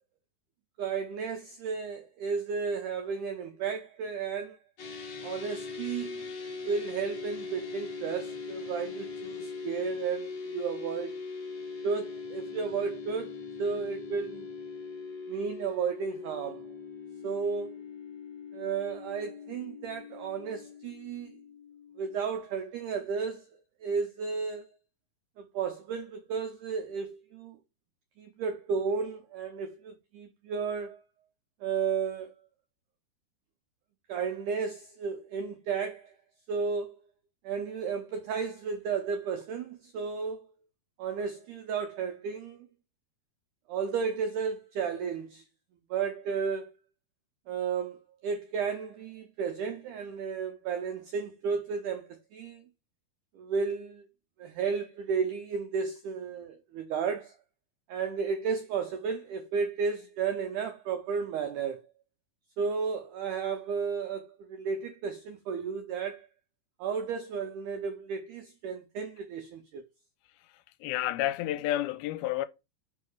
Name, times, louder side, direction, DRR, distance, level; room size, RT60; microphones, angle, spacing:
voice 1, 0.8-4.6 5.2-11.2 11.8-14.5 15.3-16.6 17.2-17.7 18.5-21.4 22.0-24.7 25.4-27.6 28.2-31.0 31.6-32.3 34.1-36.2 36.5-37.0 37.4-40.5 41.0-42.7 43.7-45.4 45.9-46.7 47.5-52.7 53.3-54.1 54.4-57.4 57.9-61.8 62.6-66.3 66.8-69.8, right 6 dB, 80° right, 1.8 m, -33 dB
sound 1, 4.8-22.2, left 4 dB, 70° left, 1.0 m, -41 dB
voice 2, 70.8-72.5, left 14 dB, 85° left, 2.4 m, -30 dB
5.4 x 5.3 x 4.8 m
omnidirectional pair, 4.4 m